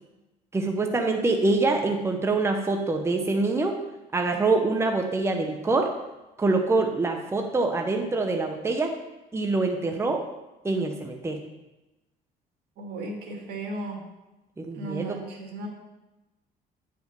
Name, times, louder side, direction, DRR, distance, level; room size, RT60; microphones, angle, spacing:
voice 1, 0.5-3.8 4.1-5.9 6.4-8.9 9.3-10.2 10.6-11.4 14.6-15.2, right 3 dB, 15° right, 3 dB, 0.9 m, -25 dB
voice 2, 12.8-14.0 14.7-15.7, right 2 dB, 75° right, 1 dB, 2.1 m, -35 dB
9.3 x 5.2 x 5.3 m, 1.0 s
cardioid pair, 110°, 17 cm